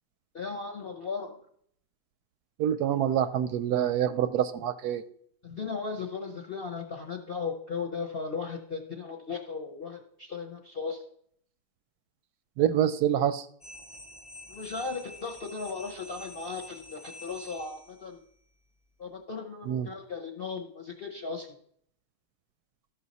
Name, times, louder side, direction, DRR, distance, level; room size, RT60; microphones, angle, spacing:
voice 1, 0.3-1.4 5.4-11.0 14.5-18.2 19.0-21.5, left 5 dB, 45° left, 0 dB, 0.9 m, -36 dB
voice 2, 2.6-5.0 12.6-13.5 19.7-19.9, right 10 dB, 70° right, 12 dB, 1.0 m, -26 dB
sound 1, 13.6-18.1, left 1 dB, 10° left, 0.4 m, -47 dB
13.5 x 5.6 x 4.1 m, 0.65 s
omnidirectional pair, 1.9 m